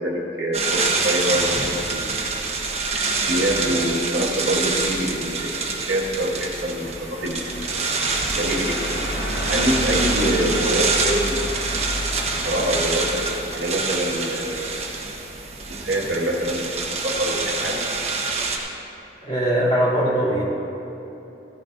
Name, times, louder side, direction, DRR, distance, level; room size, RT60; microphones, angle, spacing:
voice 1, 0.0-2.5 2.8-8.8 9.5-11.8 12.4-13.2 13.5-14.9 15.7-17.8, equal, 80° right, -2 dB, 1.8 m, -26 dB
sound 1, 0.5-18.6, right 4 dB, 35° right, 1.2 m, -26 dB
sound 2, 2.9-15.1, equal, 75° left, 1.6 m, -32 dB
voice 2, 19.2-20.4, right 1 dB, 30° left, -9 dB, 2.9 m, -20 dB
15.5 x 14.0 x 2.6 m, 3.0 s
head